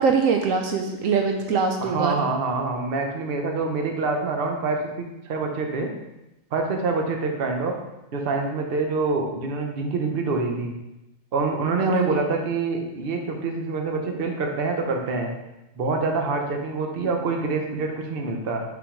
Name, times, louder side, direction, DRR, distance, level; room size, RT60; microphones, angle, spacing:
voice 1, 0.0-2.2 11.8-12.2, right 5 dB, 75° right, 4 dB, 1.0 m, -23 dB
voice 2, 1.8-5.9 6.5-7.7 8.1-10.7 11.3-15.3 15.8-18.6, right 3 dB, 50° right, 3 dB, 0.9 m, -26 dB
5.8 x 3.8 x 4.9 m, 0.95 s
omnidirectional pair, 1.4 m